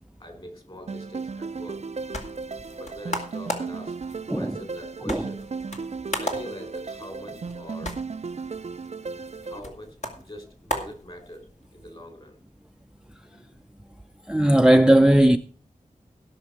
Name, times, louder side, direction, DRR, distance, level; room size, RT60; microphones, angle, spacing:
voice 1, 0.2-1.9 2.7-4.0 4.3-8.0 9.4-11.5 11.7-12.4 13.2-13.6, equal, 40° left, 4.9 m, -43 dB
sound 1, 0.9-9.6, right 4 dB, 55° right, 0.5 m, -35 dB
sound 2, 1.7-11.7, left 1 dB, 55° left, 2.7 m, -37 dB
voice 2, 14.3-15.4, right 1 dB, 5° right, 0.6 m, -17 dB
16.5 x 6.5 x 5.9 m
wide cardioid pair, 50°, 14 cm